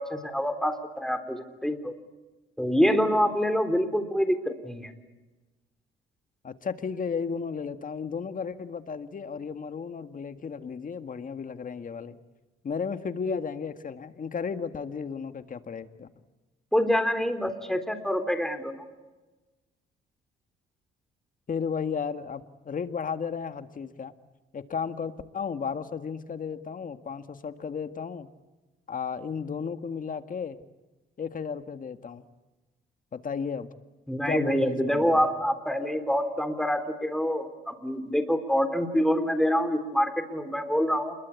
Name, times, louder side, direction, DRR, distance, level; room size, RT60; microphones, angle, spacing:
voice 1, 0.0-1.9 2.6-4.9 16.7-18.8 34.1-41.2, equal, ahead, 8 dB, 3.6 m, -26 dB
voice 2, 6.4-12.2 12.6-16.1 21.5-24.1 24.5-28.3 28.9-30.6 31.2-32.2 33.1-33.7 34.3-35.2, left 6 dB, 45° left, 9 dB, 1.8 m, -34 dB
28.5 x 22.0 x 8.4 m, 1.2 s
cardioid pair, 90°, 20 cm